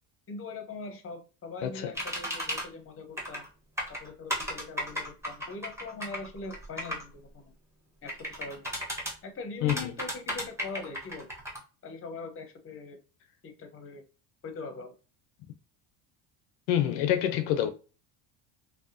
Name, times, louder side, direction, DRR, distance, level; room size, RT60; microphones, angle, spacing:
voice 1, 0.3-3.5 3.9-7.5 8.0-8.7 9.2-11.3 11.8-13.0 13.4-14.0 14.4-14.9, left 3 dB, 30° left, 0.7 m, -42 dB
sound 1, 2.0-2.6 3.2-3.5 3.8-7.0 8.1-9.1 9.7-11.6, equal, 5° right, 1.0 m, -34 dB
voice 2, 9.6-9.9 16.7-17.7, left 11 dB, 85° left, 0.6 m, -27 dB
2.7 x 2.2 x 2.5 m
supercardioid pair, 80°, 48 cm